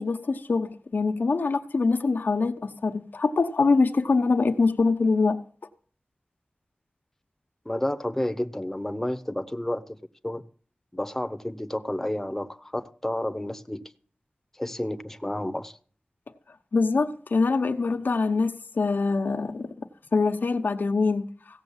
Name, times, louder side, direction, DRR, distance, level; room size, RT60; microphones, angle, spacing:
voice 1, 0.0-5.4 16.7-21.3, left 4 dB, 90° left, 1.0 m, -24 dB
voice 2, 7.6-10.0 10.2-10.4 10.9-13.8 14.6-15.7, left 1 dB, 10° left, 0.9 m, -30 dB
16.0 x 7.1 x 7.3 m
wide cardioid pair, 80°, 3 cm